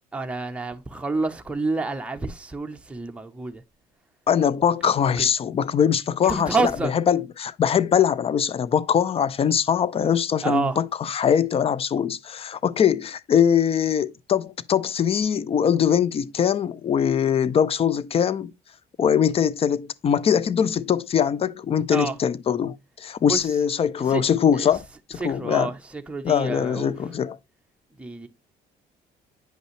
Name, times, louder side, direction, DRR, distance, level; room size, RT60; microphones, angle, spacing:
voice 1, 0.1-3.6 5.2-5.3 6.2-6.9 10.4-10.8 21.9-22.1 23.3-23.4 24.1-24.2 24.5-24.7 25.2-26.9 28.0-28.3, right 3 dB, 5° right, 0.8 m, -28 dB
voice 2, 4.3-18.5 19.0-25.7 26.2-27.4, left 8 dB, 35° left, 0.5 m, -22 dB
8.9 x 5.4 x 3.1 m
cardioid pair, 110°, 17 cm